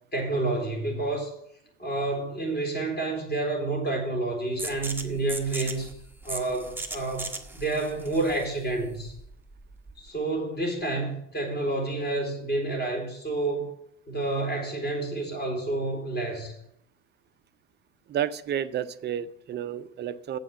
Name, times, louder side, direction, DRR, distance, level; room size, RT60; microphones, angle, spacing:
voice 1, 0.1-1.3 1.8-5.9 6.2-7.3 7.5-9.1 10.0-13.8 14.1-16.5, right 2 dB, 25° left, 0 dB, 4.1 m, -29 dB
sound 1, 4.6-10.1, right 2 dB, 5° right, 1.0 m, -38 dB
voice 2, 18.1-20.4, right 10 dB, 30° right, 14 dB, 0.6 m, -31 dB
7.6 x 7.4 x 6.6 m, 0.73 s
figure-of-eight pair, 70°, 36 cm